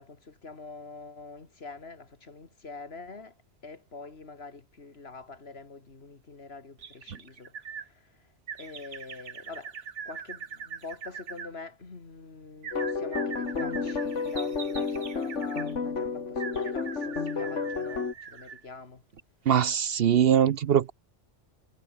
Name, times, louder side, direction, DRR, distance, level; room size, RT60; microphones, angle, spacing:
voice 1, 0.0-9.8 10.0-19.0, left 3 dB, 60° left, 2.5 m, -45 dB
sound 1, 6.8-7.9 8.5-11.5 12.6-15.7 16.4-18.7 19.1-19.2, right 6 dB, 90° right, 1.7 m, -42 dB
sound 2, 12.7-18.1, left 5 dB, 75° left, 2.3 m, -31 dB
voice 2, 19.5-20.9, right 9 dB, 60° right, 0.8 m, -22 dB
omnidirectional pair, 1.2 m